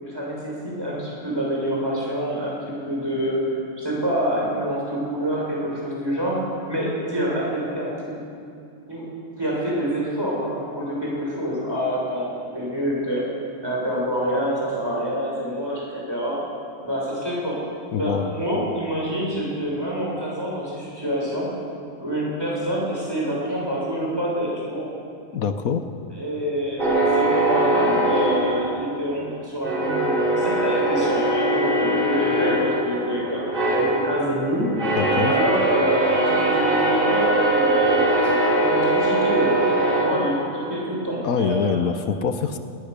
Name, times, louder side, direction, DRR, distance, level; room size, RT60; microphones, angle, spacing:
voice 1, 0.0-3.5 3.8-8.2 8.9-9.0 9.4-13.3 13.6-16.4 16.8-17.6 17.9-21.5 22.0-24.9 26.1-33.5 33.8-34.7 35.2-38.0 38.6-41.9, equal, 15° right, -4 dB, 6.6 m, -26 dB
voice 2, 17.9-18.3 25.3-25.8 34.9-35.3 41.2-42.6, left 6 dB, 80° left, 8 dB, 1.4 m, -24 dB
sound 1, 26.8-29.3 29.6-40.8, right 1 dB, 40° right, 4.6 m, -21 dB
20.5 x 19.0 x 6.8 m, 2.5 s
omnidirectional pair, 1.5 m